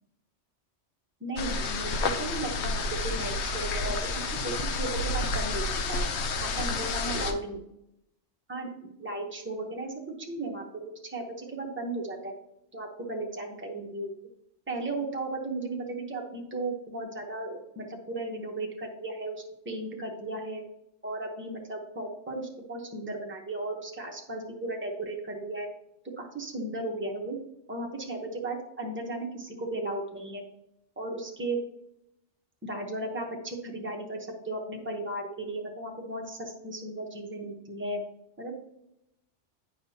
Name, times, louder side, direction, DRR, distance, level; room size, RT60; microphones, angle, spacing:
voice 1, 1.2-6.0 6.6-7.6 8.5-8.7 9.0-9.9 10.2-12.3 12.7-14.1 14.7-20.6 21.0-25.7 26.2-27.4 27.7-30.4 31.0-31.6 32.6-38.0 38.4-38.5, right 2 dB, 10° right, 0 dB, 0.9 m, -35 dB
sound 1, 1.4-7.3, left 3 dB, 70° left, 1.0 m, -30 dB
8.8 x 5.7 x 2.8 m, 0.83 s
omnidirectional pair, 1.2 m